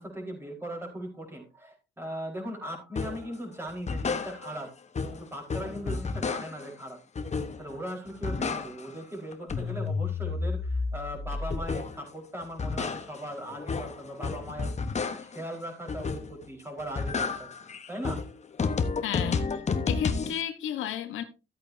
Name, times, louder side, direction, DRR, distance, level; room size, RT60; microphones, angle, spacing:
voice 1, 0.0-4.7 5.1-7.0 7.6-17.5 17.9-18.2, equal, 10° right, 4.6 m, -39 dB
sound 1, 3.0-3.3 3.7-4.7 4.9-6.7 7.2-7.8 8.1-9.0 9.3-12.1 12.4-15.4 15.9-16.5 16.8-20.4, left 4 dB, 35° left, 1.2 m, -31 dB
voice 2, 19.0-19.6 19.9-21.2, left 10 dB, 85° left, 1.2 m, -33 dB
13.5 x 8.5 x 2.7 m
cardioid pair, 90°, 20 cm